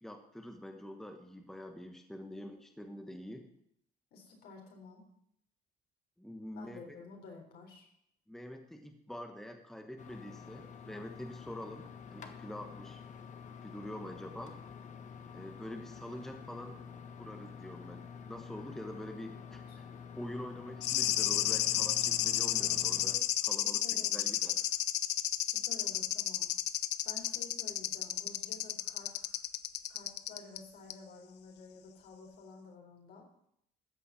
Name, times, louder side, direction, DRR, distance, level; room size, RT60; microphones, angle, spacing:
voice 1, 0.0-3.5 6.2-7.0 8.3-13.0 13.5-14.6 15.3-16.8 17.2-19.8 20.2-24.6, left 1 dB, ahead, 4 dB, 1.2 m, -46 dB
voice 2, 2.2-2.6 4.1-5.0 6.6-7.9 19.7-19.8 22.5-22.9 23.6-24.3 25.5-26.5 27.0-29.1 29.9-33.2, left 3 dB, 70° left, 1 dB, 4.1 m, -52 dB
sound 1, 10.0-23.2, left 6 dB, 45° left, 1.4 m, -48 dB
sound 2, 20.8-30.6 30.9-31.0, left 14 dB, 85° left, 0.7 m, -32 dB
14.0 x 5.4 x 8.5 m, 0.72 s
cardioid pair, 110°, 17 cm